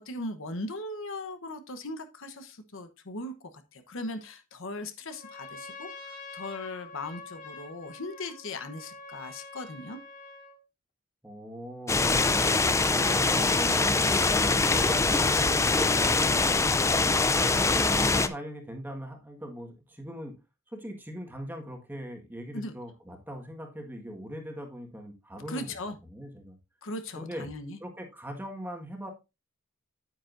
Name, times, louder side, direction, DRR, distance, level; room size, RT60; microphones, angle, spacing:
voice 1, 0.1-10.0 16.1-16.4 22.5-22.7 25.5-25.9 26.8-27.8, left 2 dB, 65° left, 1.1 m, -38 dB
Trumpet, 5.1-10.6, left 4 dB, 40° left, 2.4 m, -46 dB
voice 2, 11.2-16.7 17.3-20.4 20.7-25.8 26.0-26.6 27.1-27.5 27.8-29.1, equal, 10° right, 1.7 m, -40 dB
sound 1, 11.9-18.3, left 3 dB, 15° left, 0.5 m, -23 dB
9.2 x 9.1 x 2.6 m
head